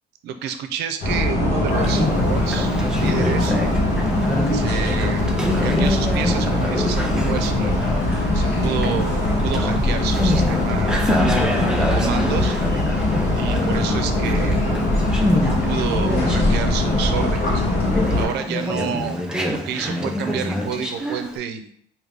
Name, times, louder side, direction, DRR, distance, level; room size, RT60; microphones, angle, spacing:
voice 1, 0.2-2.7 3.0-3.6 4.5-7.8 8.3-11.0 11.8-12.6 13.3-14.8 15.4-17.6 18.1-21.7, right 8 dB, 80° right, 8 dB, 0.5 m, -29 dB
sound 1, 1.0-18.2, left 1 dB, 70° left, 1.2 m, -21 dB
Conversation, 1.7-21.4, left 1 dB, 5° right, 0.6 m, -26 dB
3.9 x 2.7 x 3.3 m, 0.67 s
cardioid pair, 110°, 17 cm